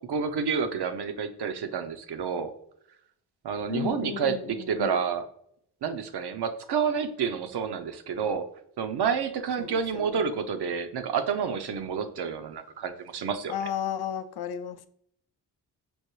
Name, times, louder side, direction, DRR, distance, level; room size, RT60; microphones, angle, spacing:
voice 1, 0.1-2.5 3.4-5.3 5.8-8.5 8.8-13.5, right 6 dB, 70° right, 8 dB, 0.6 m, -29 dB
voice 2, 3.7-5.0 9.6-10.4 13.5-14.9, left 9 dB, 65° left, 9 dB, 0.5 m, -34 dB
6.2 x 2.6 x 3.1 m, 0.71 s
cardioid pair, 55°, 42 cm